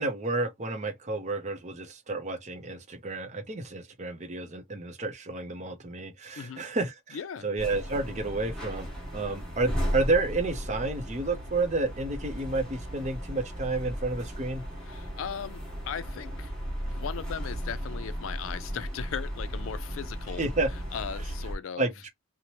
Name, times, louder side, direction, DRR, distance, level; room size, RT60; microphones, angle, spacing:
voice 1, 0.0-7.2 7.4-14.6 20.4-20.7 21.8-22.1, right 3 dB, 35° right, 0.6 m, -30 dB
voice 2, 7.1-7.5 14.9-16.5 16.8-20.4 20.7-21.9, left 7 dB, 70° left, 0.4 m, -38 dB
sound 1, 7.6-21.6, equal, 5° left, 1.3 m, -36 dB
2.8 x 2.1 x 2.7 m
head